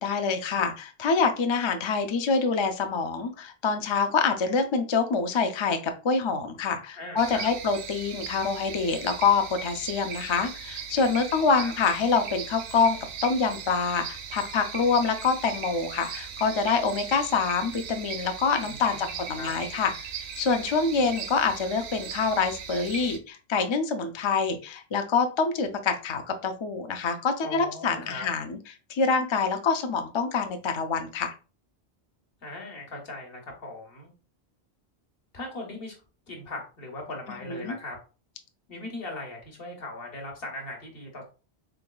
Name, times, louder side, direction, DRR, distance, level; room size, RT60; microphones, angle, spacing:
voice 1, 0.0-20.1 20.4-28.6 28.9-31.3 37.4-37.7, left 5 dB, 50° left, 6 dB, 0.3 m, -26 dB
voice 2, 6.9-7.5 11.6-11.7 18.6-19.5 27.4-28.3 32.4-34.1 35.3-36.0 36.3-38.0 38.7-41.2, left 2 dB, 65° left, 1 dB, 1.3 m, -39 dB
sound 1, 7.2-23.2, right 6 dB, 85° right, 0.9 m, -38 dB
3.9 x 3.5 x 2.2 m, 0.34 s
omnidirectional pair, 1.1 m